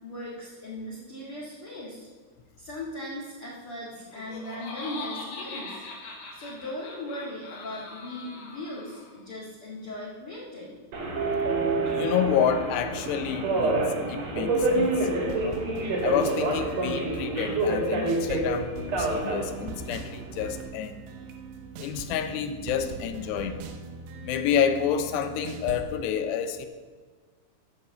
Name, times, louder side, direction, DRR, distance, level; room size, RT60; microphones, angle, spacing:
voice 1, 0.0-2.1 2.6-5.8 6.3-10.8, left 1 dB, 45° left, 2.0 m, -38 dB
Laughter, 4.0-9.2, left 3 dB, 60° left, 3.3 m, -41 dB
Subway metro underground, 10.9-20.6, right 2 dB, 45° right, 2.6 m, -28 dB
voice 2, 11.9-15.1 15.4-15.6 16.0-21.0 21.8-23.6 24.2-26.7, left 8 dB, 80° left, 2.7 m, -29 dB
sound 1, 14.6-25.8, right 4 dB, 75° right, 2.9 m, -41 dB
15.0 x 5.3 x 6.8 m
omnidirectional pair, 5.2 m